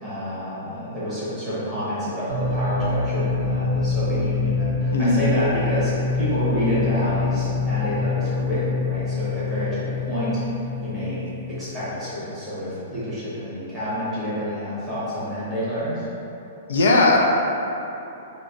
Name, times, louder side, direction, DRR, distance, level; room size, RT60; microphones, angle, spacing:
voice 1, 0.0-10.4 10.8-16.0, equal, 5° right, -12 dB, 1.0 m, -28 dB
sound 1, 2.3-11.9, left 4 dB, 35° right, 0.6 m, -25 dB
voice 2, 4.9-5.3 16.7-17.2, left 2 dB, 85° left, -1 dB, 0.5 m, -18 dB
3.9 x 2.3 x 3.8 m, 3.0 s
hypercardioid pair, 175°, 0 cm